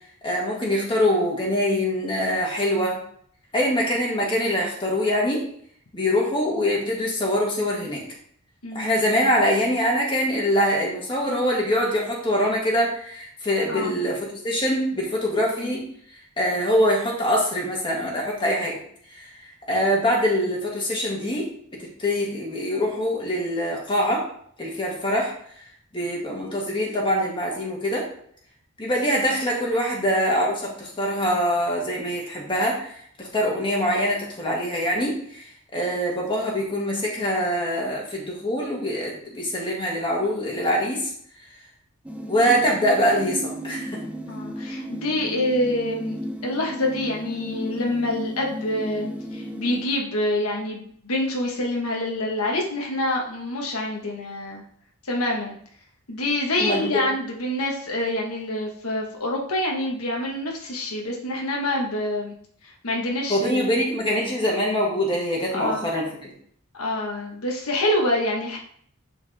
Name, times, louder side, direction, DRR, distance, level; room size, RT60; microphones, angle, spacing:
voice 1, 0.2-3.0 3.5-5.4 5.9-8.0 8.7-15.8 16.4-18.8 19.1-19.3 19.7-21.5 22.0-24.2 24.6-25.3 25.9-28.1 28.8-32.9 33.2-35.5 35.7-41.0 42.3-44.0 56.6-57.0 63.3-66.3, equal, 25° left, -3 dB, 2.1 m, -24 dB
voice 2, 8.6-9.0 13.7-13.9 15.6-15.8 44.3-54.6 55.1-55.5 56.1-62.4 62.6-63.7 64.2-64.6 65.5-65.9 66.7-68.6, left 1 dB, 80° left, 0 dB, 1.4 m, -26 dB
sound 1, 42.1-49.9, equal, 5° right, 0.6 m, -34 dB
9.6 x 4.9 x 3.5 m, 0.62 s
head